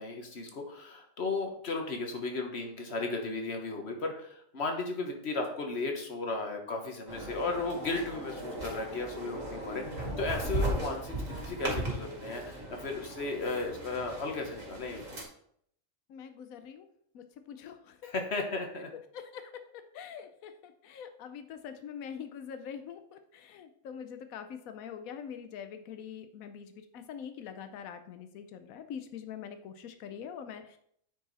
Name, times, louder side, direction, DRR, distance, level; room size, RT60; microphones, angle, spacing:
voice 1, 0.0-15.2 18.0-18.9, left 3 dB, 50° left, 3 dB, 1.5 m, -35 dB
sound 1, 7.1-15.2, right 1 dB, 65° right, 2.6 m, -37 dB
voice 2, 16.1-16.9 17.1-18.1 18.9-30.8, left 7 dB, 85° left, 9 dB, 1.1 m, -44 dB
9.1 x 4.8 x 4.1 m, 0.67 s
omnidirectional pair, 1.4 m